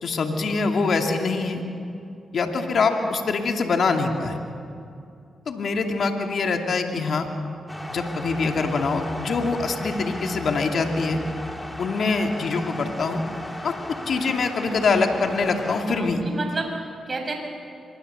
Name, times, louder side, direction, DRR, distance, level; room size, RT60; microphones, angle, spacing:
voice 1, 0.0-1.6 2.3-4.4 5.5-7.3 7.9-11.2 11.8-13.2 13.6-16.2, left 4 dB, 65° left, 4 dB, 2.4 m, -24 dB
sound 1, 7.7-15.8, left 1 dB, 15° left, 3.4 m, -36 dB
voice 2, 15.7-17.3, right 3 dB, 45° right, 2 dB, 5.6 m, -31 dB
25.0 x 22.0 x 6.9 m, 2.5 s
supercardioid pair, 45°, 0 cm